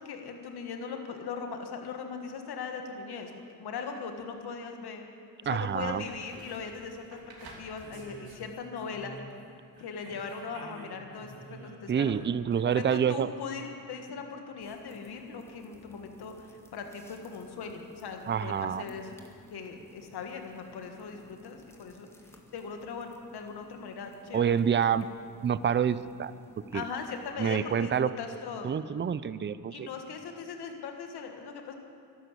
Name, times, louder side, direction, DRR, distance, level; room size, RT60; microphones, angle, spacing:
voice 1, 0.0-5.0 5.4-7.2 7.6-9.2 9.8-12.2 12.6-19.1 19.5-22.1 22.5-24.6 25.0-25.1 26.7-28.7 29.7-31.7, left 5 dB, 80° left, 4 dB, 1.7 m, -39 dB
sound 1, 5.4-5.5 5.9-9.5 9.7-12.9 15.5-15.6, right 2 dB, 70° right, 3.0 m, -50 dB
voice 2, 5.5-6.0 11.9-13.3 18.3-18.8 24.3-25.1 25.4-26.3 26.7-26.8 27.4-28.1 28.6-29.9, right 8 dB, 30° right, 15 dB, 0.5 m, -27 dB
sound 2, 14.6-27.3, equal, 5° left, 1.9 m, -56 dB
12.5 x 12.0 x 8.4 m, 2.5 s
cardioid pair, 75°, 38 cm